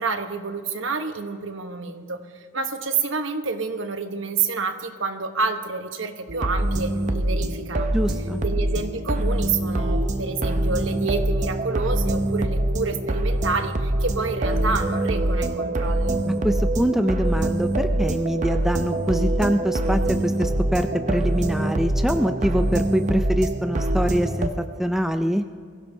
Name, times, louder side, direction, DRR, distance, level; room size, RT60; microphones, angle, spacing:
voice 1, 0.0-2.2 2.5-7.9 8.4-16.2, right 4 dB, 65° right, 7 dB, 1.1 m, -28 dB
sound 1, 6.3-24.5, right 1 dB, 35° right, 0.7 m, -24 dB
voice 2, 7.9-8.4 16.4-24.5 24.8-25.4, equal, ahead, 6 dB, 0.4 m, -24 dB
22.5 x 16.0 x 2.7 m, 2.1 s
head